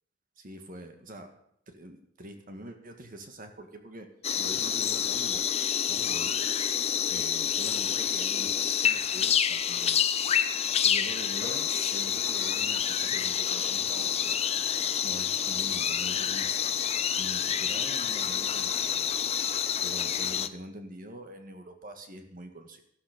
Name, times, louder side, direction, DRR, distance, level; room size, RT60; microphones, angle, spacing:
voice 1, 0.4-1.3 1.7-4.1 4.4-5.5 5.9-6.4 7.1-10.0 10.8-14.4 15.0-16.8 17.2-19.1 19.8-22.8, right 1 dB, 45° right, 6 dB, 1.8 m, -44 dB
sound 1, 4.2-20.5, left 8 dB, 35° left, 0.6 m, -28 dB
13.5 x 13.0 x 5.2 m, 0.72 s
head